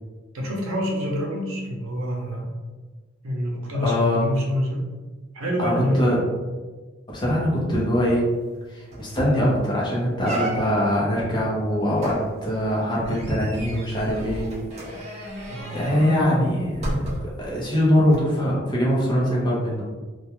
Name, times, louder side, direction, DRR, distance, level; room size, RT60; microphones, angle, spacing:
voice 1, 0.3-2.5 3.2-4.9 5.3-6.2 15.5-15.8, equal, 90° right, -1 dB, 0.6 m, -27 dB
voice 2, 3.8-4.3 5.6-6.2 7.1-8.3 8.7-14.5 15.7-19.9, equal, 20° left, -5 dB, 0.6 m, -22 dB
sound 1, 8.5-8.6 8.9-9.2 9.6-9.7 10.2-11.0 12.0-17.5 18.1-18.2, right 1 dB, 30° right, 0.6 m, -33 dB
2.3 x 2.1 x 2.8 m, 1.3 s
head